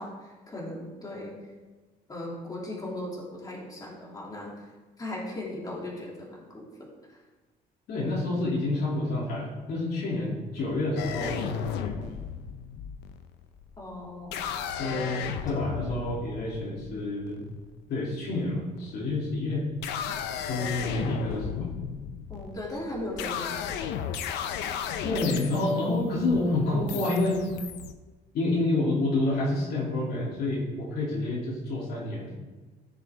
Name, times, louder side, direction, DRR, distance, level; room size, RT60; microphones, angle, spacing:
voice 1, 0.0-1.3 2.1-4.7 5.0-7.2 13.8-14.5 22.3-23.8, left 1 dB, 20° left, -4 dB, 2.9 m, -38 dB
voice 2, 7.9-12.2 14.8-17.4 17.9-19.7 20.4-21.7 25.0-27.4 28.3-32.3, left 2 dB, 70° left, -4 dB, 3.0 m, -28 dB
sound 1, 11.0-17.7 18.8-19.2 19.7-27.9, left 8 dB, 90° left, 0.7 m, -35 dB
14.5 x 6.8 x 3.6 m, 1.3 s
cardioid pair, 110°, 17 cm